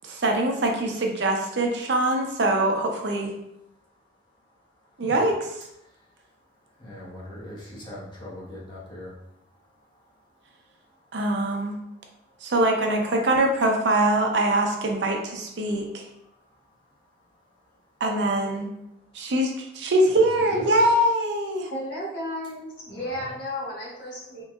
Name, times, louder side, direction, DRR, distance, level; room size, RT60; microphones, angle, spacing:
voice 1, 0.0-3.3 5.0-5.3 11.1-11.7 12.4-16.0 18.0-18.7 19.1-21.7, right 1 dB, 75° right, 2 dB, 0.6 m, -23 dB
voice 2, 6.8-9.1 20.1-20.9 22.9-23.3, left 1 dB, 25° left, -6 dB, 1.0 m, -40 dB
voice 3, 21.7-24.4, left 1 dB, 65° left, -7 dB, 1.4 m, -33 dB
3.6 x 3.0 x 2.4 m, 0.79 s
head